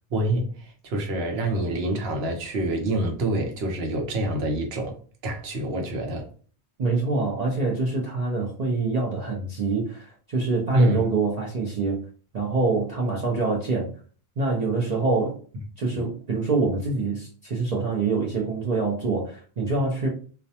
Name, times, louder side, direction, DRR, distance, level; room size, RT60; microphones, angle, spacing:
voice 1, 0.1-5.0 5.2-6.3 10.7-11.0 15.9-16.1, right 1 dB, 65° right, 0.9 m, -26 dB
voice 2, 6.8-12.0 12.3-13.9 14.4-15.4 15.8-20.1, right 3 dB, 50° right, 0.5 m, -25 dB
2.4 x 2.1 x 2.7 m
omnidirectional pair, 1.1 m